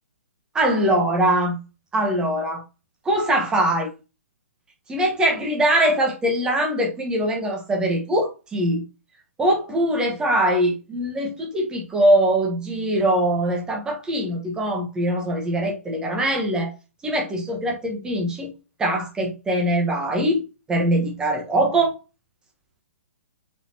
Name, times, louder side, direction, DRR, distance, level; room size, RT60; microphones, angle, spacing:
voice 1, 0.5-1.6 1.9-2.6 3.0-3.9 4.9-8.8 9.4-16.7 17.0-18.5 18.8-21.9, right 1 dB, 10° right, 1.3 m, -22 dB
7.8 x 4.2 x 2.9 m
figure-of-eight pair, 125°, 8 cm